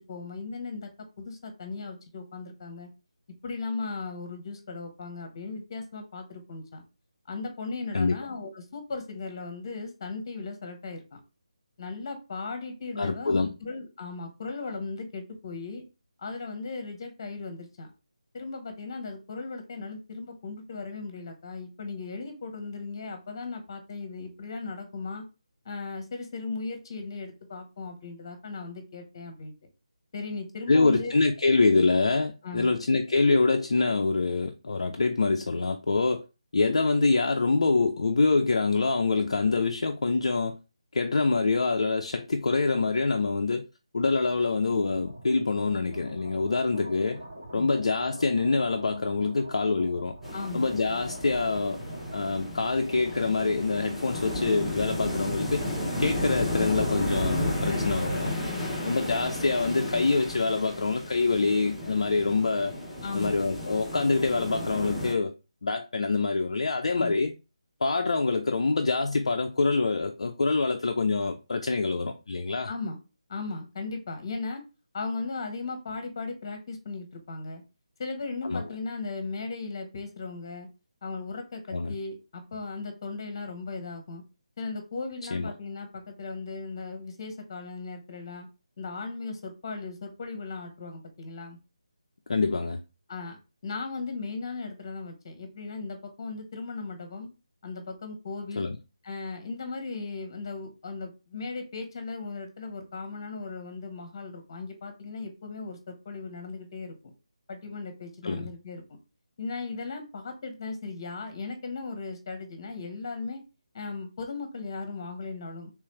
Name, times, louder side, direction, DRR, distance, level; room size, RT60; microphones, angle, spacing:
voice 1, 0.1-0.9 1.2-2.9 3.4-6.8 7.3-11.2 11.8-15.8 16.2-17.9 18.3-25.2 25.6-29.5 30.1-31.1 32.4-32.7 47.5-47.7 50.3-50.7 57.7-58.1 58.5-58.9 63.0-63.4 67.0-67.2 72.7-73.0 73.3-74.6 74.9-77.6 78.0-80.7 81.0-84.2 84.6-88.5 88.8-91.6 93.1-97.3 97.6-98.7 99.0-106.9 107.5-109.0 109.4-113.4 113.7-115.7, left 3 dB, 35° left, 1.0 m, -37 dB
voice 2, 13.0-13.5 30.7-36.2 36.5-40.6 40.9-43.6 43.9-47.2 47.5-50.1 50.5-51.8 52.1-55.6 56.0-58.3 58.8-62.7 63.1-65.3 65.6-67.3 67.8-72.7 78.4-78.6 81.7-81.9 85.3-85.5 92.3-92.8 98.6-98.8 108.2-108.5, left 3 dB, 60° left, 0.4 m, -25 dB
sound 1, 44.1-58.3, right 1 dB, 60° right, 2.3 m, -46 dB
sound 2, 50.2-65.1, left 1 dB, ahead, 0.9 m, -33 dB
3.3 x 3.1 x 3.1 m
figure-of-eight pair, 155°, 3 cm